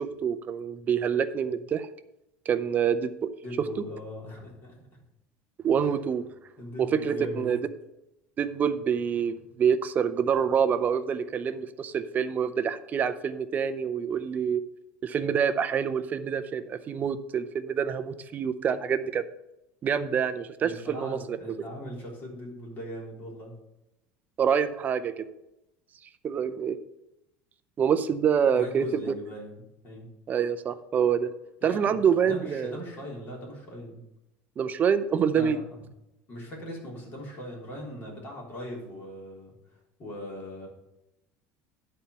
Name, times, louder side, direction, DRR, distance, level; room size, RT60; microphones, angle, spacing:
voice 1, 0.0-1.9 2.5-3.3 5.6-6.2 6.8-7.6 8.4-14.6 15.0-19.2 19.8-21.4 24.4-25.3 26.2-26.8 27.8-29.0 30.3-31.3 31.6-32.8 34.6-35.6, right 7 dB, 30° right, 11 dB, 0.5 m, -26 dB
voice 2, 3.4-4.9 5.8-5.9 6.6-7.5 20.6-23.5 28.5-30.1 31.6-34.0 35.3-35.8 36.3-39.5 40.0-40.7, equal, 35° left, -3 dB, 3.7 m, -40 dB
11.0 x 4.3 x 6.7 m, 0.89 s
cardioid pair, 140°, 6 cm